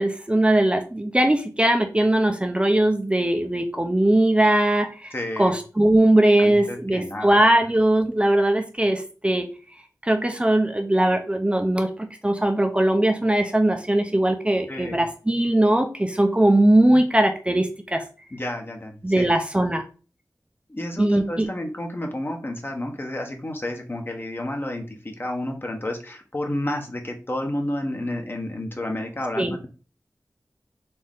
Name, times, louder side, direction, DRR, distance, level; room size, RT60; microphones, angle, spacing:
voice 1, 0.0-9.5 10.0-18.0 19.0-19.8 21.0-21.5 29.4-29.5, right 1 dB, 15° right, 4 dB, 0.6 m, -20 dB
voice 2, 5.1-5.5 6.4-7.3 14.7-15.0 18.3-19.3 20.7-24.8 25.2-29.7, left 1 dB, 35° left, 2 dB, 1.0 m, -30 dB
4.3 x 3.0 x 3.7 m, 0.36 s
wide cardioid pair, 60°, 6 cm